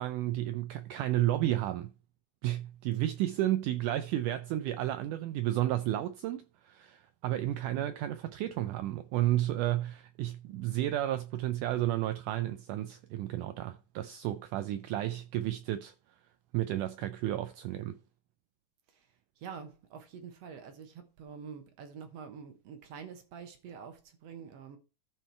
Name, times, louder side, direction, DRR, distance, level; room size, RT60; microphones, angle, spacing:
voice 1, 0.0-1.9 2.4-15.9 16.5-18.0, right 14 dB, 90° right, 1.8 m, -32 dB
voice 2, 18.9-24.8, right 6 dB, 65° right, 1.6 m, -47 dB
13.5 x 4.5 x 4.5 m
omnidirectional pair, 4.3 m